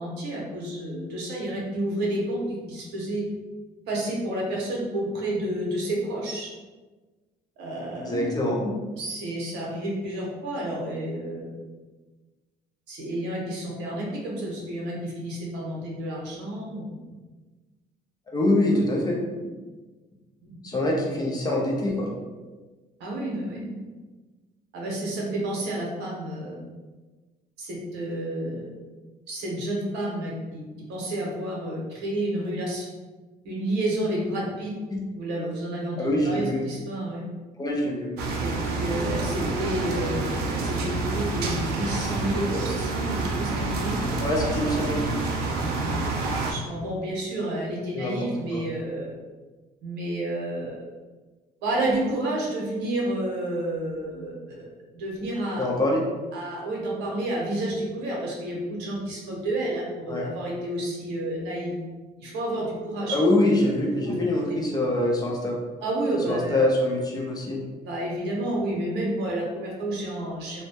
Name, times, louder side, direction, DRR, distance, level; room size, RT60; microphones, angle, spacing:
voice 1, 0.0-3.2 3.9-6.5 7.6-8.1 8.9-11.5 12.9-16.8 23.0-23.7 24.7-26.6 27.6-28.7 29.3-30.6 30.9-32.9 33.4-34.7 35.1-37.2 38.4-44.0 45.5-46.1 46.4-49.1 49.8-50.8 51.6-54.7 54.9-55.7 56.3-61.7 62.2-63.2 63.6-63.7 64.1-64.2 65.8-66.6 67.8-70.6, right 1 dB, 85° right, -3 dB, 0.8 m, -30 dB
voice 2, 8.0-8.7 18.3-19.2 20.6-22.1 36.0-36.6 37.6-38.1 44.2-45.0 47.9-48.6 55.6-56.0 60.1-60.3 63.1-65.6 66.3-67.6, left 1 dB, 25° left, -2 dB, 0.5 m, -24 dB
sound 1, 38.2-46.5, right 3 dB, 70° right, 0.4 m, -28 dB
2.2 x 2.0 x 2.8 m, 1.3 s
cardioid pair, 110°, 17 cm